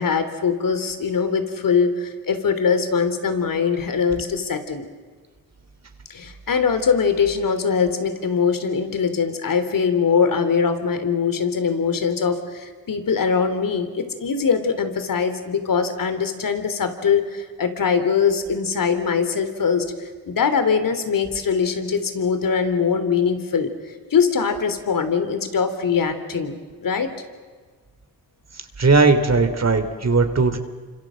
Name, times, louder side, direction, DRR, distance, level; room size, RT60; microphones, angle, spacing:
voice 1, 0.0-4.9 6.1-23.7 24.1-27.1, left 6 dB, 65° left, 9 dB, 3.5 m, -22 dB
voice 2, 28.8-30.6, right 4 dB, 45° right, 8 dB, 3.2 m, -17 dB
28.5 x 25.5 x 7.8 m, 1.5 s
supercardioid pair, 45°, 36 cm